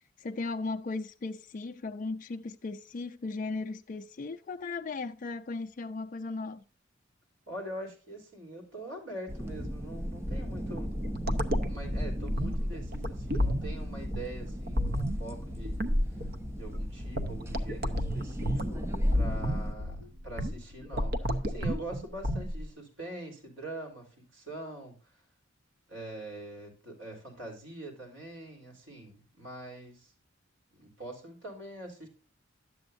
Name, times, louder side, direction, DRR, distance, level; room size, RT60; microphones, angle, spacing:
voice 1, 0.2-6.6, left 3 dB, 40° left, 0.4 m, -36 dB
voice 2, 7.5-10.9 11.6-16.3 16.6-25.2 25.9-30.1 30.7-32.1, right 1 dB, 65° right, 3.7 m, -44 dB
sound 1, 9.3-19.7, equal, 15° right, 0.5 m, -37 dB
sound 2, 10.8-22.7, equal, 50° right, 0.8 m, -31 dB
11.0 x 7.8 x 2.5 m
head